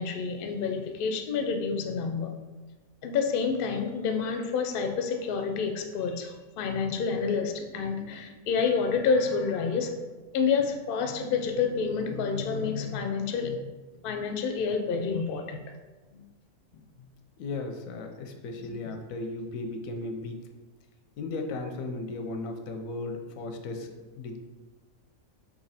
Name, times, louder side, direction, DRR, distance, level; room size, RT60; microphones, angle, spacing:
voice 1, 0.0-2.3 3.0-13.6 14.0-15.6 16.1-16.2 16.7-16.8 18.5-18.9, left 5 dB, 65° left, 6 dB, 0.5 m, -29 dB
voice 2, 17.4-20.4 21.2-24.4, left 2 dB, 90° left, 5 dB, 1.0 m, -36 dB
4.0 x 3.0 x 4.0 m, 1.2 s
omnidirectional pair, 1.4 m